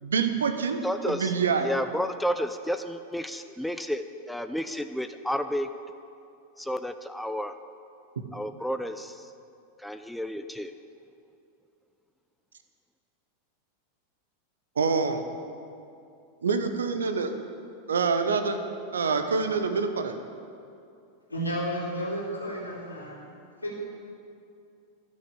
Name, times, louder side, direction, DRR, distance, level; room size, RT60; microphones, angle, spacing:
voice 1, 0.0-0.8 1.0-1.7 14.8-15.2 16.4-17.3 17.9-18.6 18.9-20.2, right 5 dB, 70° right, 8 dB, 0.9 m, -26 dB
voice 2, 0.8-1.3 1.6-5.7 6.6-7.5 8.3-9.3 9.8-10.7, equal, ahead, 8 dB, 0.4 m, -31 dB
voice 3, 21.3-23.2 23.6-23.8, equal, 80° left, -5 dB, 3.0 m, -32 dB
11.5 x 6.4 x 8.5 m, 2.6 s
figure-of-eight pair, 90°, 0 cm